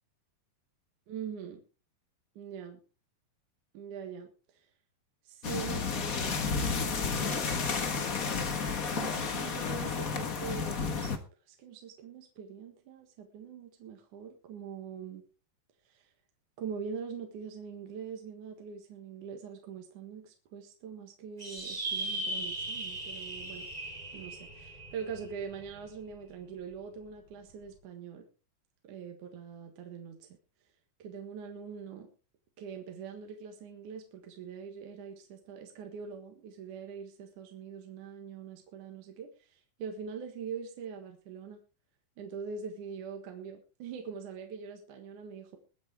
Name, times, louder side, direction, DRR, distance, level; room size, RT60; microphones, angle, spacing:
voice 1, 1.1-1.6 2.4-2.8 3.7-4.7 5.2-7.5 8.9-11.1 11.5-15.2 15.8-16.1 16.6-23.7 24.1-28.3 28.8-30.4 31.0-32.1 32.6-41.6 42.2-45.6, right 6 dB, 65° right, 4 dB, 2.9 m, -43 dB
sound 1, 5.4-11.2, left 5 dB, 80° left, 0.7 m, -32 dB
sound 2, 21.4-26.1, right 2 dB, 15° right, 2.2 m, -38 dB
22.0 x 8.7 x 3.5 m, 0.34 s
omnidirectional pair, 4.1 m